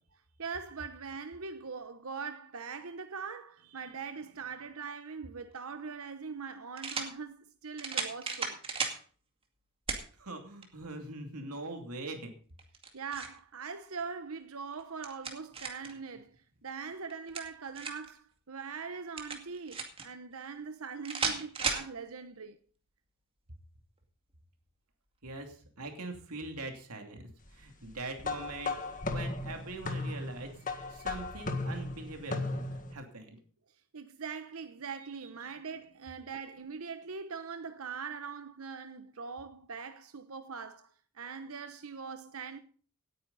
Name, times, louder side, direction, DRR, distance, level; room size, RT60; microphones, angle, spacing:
voice 1, 0.4-8.6 12.9-22.6 33.9-42.6, right 5 dB, 70° right, 0.9 m, -42 dB
sound 1, 5.5-5.6 6.8-7.1 7.8-9.0 9.9-10.1 10.6-10.7 12.6-13.4 14.7-15.9 17.1-18.1 19.2-20.1 21.0-21.9, right 4 dB, 25° right, 2.3 m, -35 dB
voice 2, 10.2-12.3 25.2-28.7 29.1-30.5 30.9-33.4, right 2 dB, 85° right, 2.7 m, -42 dB
sound 2, 28.2-32.9, left 3 dB, 35° left, 1.7 m, -36 dB
18.0 x 9.5 x 4.1 m
head